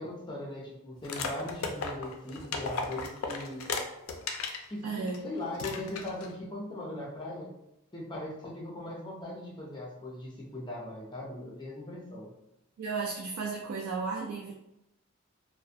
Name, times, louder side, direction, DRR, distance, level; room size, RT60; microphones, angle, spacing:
voice 1, 0.0-3.7 4.7-7.5 7.9-12.3, left 1 dB, 20° left, -3 dB, 0.5 m, -39 dB
sound 1, 1.0-4.6 5.1-5.2 5.5-6.3, left 4 dB, 75° left, 0.4 m, -35 dB
voice 2, 4.8-5.2 12.8-14.5, right 4 dB, 90° right, -1 dB, 0.3 m, -34 dB
2.2 x 2.1 x 2.6 m, 0.86 s
head